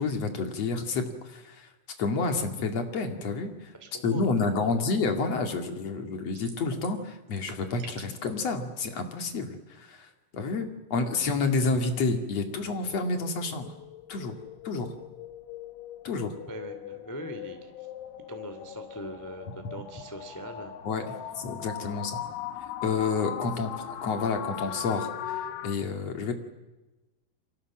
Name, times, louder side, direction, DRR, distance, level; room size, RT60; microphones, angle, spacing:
voice 1, 0.0-1.7 2.0-3.7 4.0-13.7 14.1-14.3 14.6-14.9 16.0-16.3 20.8-21.0 21.4-22.2 22.8-26.3, left 4 dB, 45° left, 5 dB, 2.4 m, -29 dB
voice 2, 3.7-4.5 16.5-17.9 18.3-20.7 21.8-22.0, right 1 dB, 20° left, 7 dB, 0.4 m, -42 dB
sound 1, 6.3-7.0 7.3-8.3, right 5 dB, 50° right, 4.6 m, -46 dB
sound 2, 12.5-25.7, left 10 dB, 75° left, 3.6 m, -40 dB
29.5 x 24.0 x 7.6 m, 1.1 s
omnidirectional pair, 5.6 m